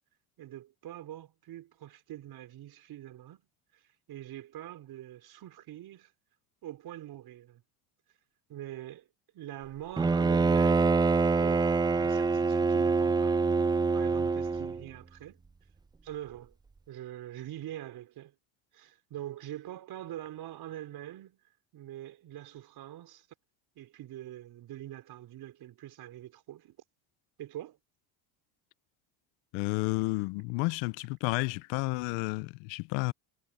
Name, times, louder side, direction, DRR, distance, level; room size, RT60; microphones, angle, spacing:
voice 1, 0.4-3.4 3.7-3.8 4.1-6.1 6.6-7.6 8.5-9.1 9.3-11.0 11.4-13.5 13.9-15.4 16.0-16.6 16.9-18.3 18.7-21.4 21.7-23.3 23.8-26.8 27.4-27.8, right 13 dB, 55° right, 4.3 m, -44 dB
Bowed string instrument, 10.0-14.8, right 4 dB, 10° right, 0.4 m, -25 dB
voice 2, 29.5-33.1, left 25 dB, 75° left, 0.8 m, -31 dB
supercardioid pair, 105°, 45 cm